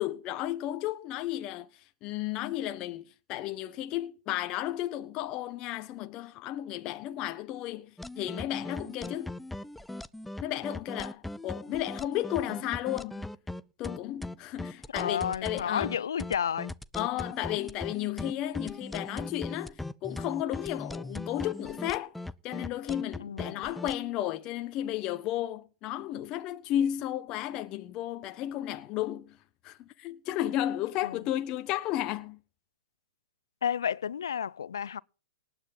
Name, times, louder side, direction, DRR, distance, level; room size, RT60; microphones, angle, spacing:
voice 1, 0.0-1.7 2.0-7.9 8.2-9.3 10.4-13.3 13.8-16.0 16.9-22.1 22.4-29.4 29.6-32.4, left 13 dB, 35° left, 1.1 m, -33 dB
sound 1, 8.0-23.9, left 2 dB, 5° left, 0.6 m, -39 dB
voice 2, 14.9-16.7 23.2-23.6 31.0-31.2 33.6-35.0, left 8 dB, 75° left, 0.6 m, -31 dB
19.0 x 8.9 x 5.6 m
hypercardioid pair, 120°, 2 cm